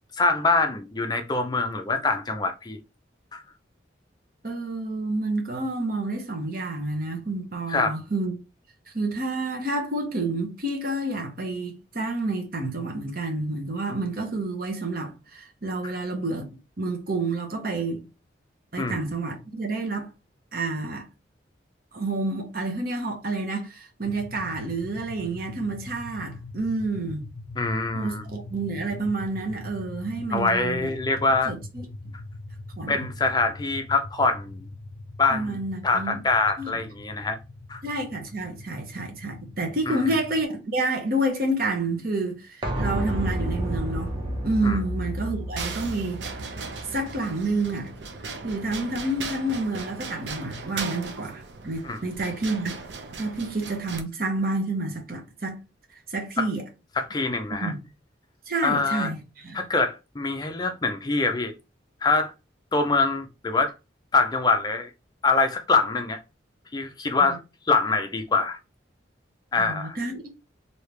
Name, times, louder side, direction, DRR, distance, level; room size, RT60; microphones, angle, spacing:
voice 1, 0.1-2.8 3.3-3.4 7.7-8.0 18.8-19.0 27.6-28.2 30.3-31.5 32.9-34.7 35.2-37.4 37.7-37.8 39.9-40.0 44.6-44.8 51.8-52.0 56.4-56.5 57.0-57.7 58.6-59.1 59.5-61.5 62.0-62.3 62.7-63.7 64.1-64.9 65.2-66.2 66.7-67.4 67.7-68.6 69.5-70.0, left 3 dB, 20° left, 0.4 m, -24 dB
voice 2, 4.4-8.3 8.9-16.5 16.8-18.0 18.7-20.1 20.5-21.1 21.9-27.2 27.9-30.9 31.4-31.9 32.8-33.1 35.3-36.2 36.6-36.7 37.8-44.2 44.4-46.6 46.9-47.9 48.4-52.7 53.2-55.6 56.1-56.6 57.5-57.8 58.5-59.6 67.2-67.4 69.6-70.3, right 2 dB, 50° right, 1.0 m, -29 dB
sound 1, 24.0-40.4, left 2 dB, 85° left, 0.5 m, -42 dB
sound 2, 42.6-48.3 48.6-48.7, right 1 dB, 25° right, 0.9 m, -31 dB
sound 3, 45.6-54.0, right 4 dB, 70° right, 0.6 m, -37 dB
3.2 x 2.8 x 3.2 m
head